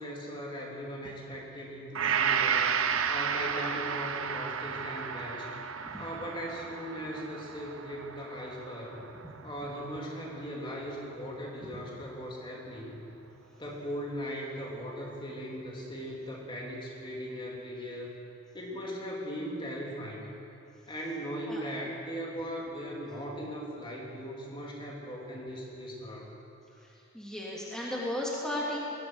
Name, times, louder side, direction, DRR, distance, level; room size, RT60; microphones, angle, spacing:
voice 1, 0.0-2.7 3.0-5.5 6.0-9.0 9.4-13.0 13.6-18.2 18.5-20.3 20.9-26.3, equal, 25° left, -2 dB, 3.0 m, -39 dB
Gong, 1.9-10.3 10.7-10.8, right 7 dB, 85° right, 0.9 m, -32 dB
voice 2, 27.1-28.8, left 1 dB, 5° left, -5 dB, 2.8 m, -34 dB
21.5 x 16.0 x 8.1 m, 2.7 s
head